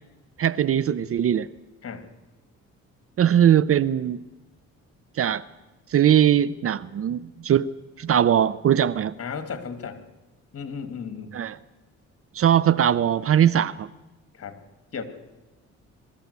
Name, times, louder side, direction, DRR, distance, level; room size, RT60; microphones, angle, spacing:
voice 1, 0.4-1.5 3.2-4.2 5.2-5.4 5.9-7.7 8.0-9.1 11.3-11.6 12.3-13.9, right 10 dB, 50° right, 19 dB, 0.6 m, -20 dB
voice 2, 9.2-10.0 10.5-11.3 14.3-14.6 14.9-15.0, left 6 dB, 50° left, 10 dB, 2.6 m, -34 dB
22.5 x 14.0 x 8.2 m, 1.1 s
cardioid pair, 90°, 30 cm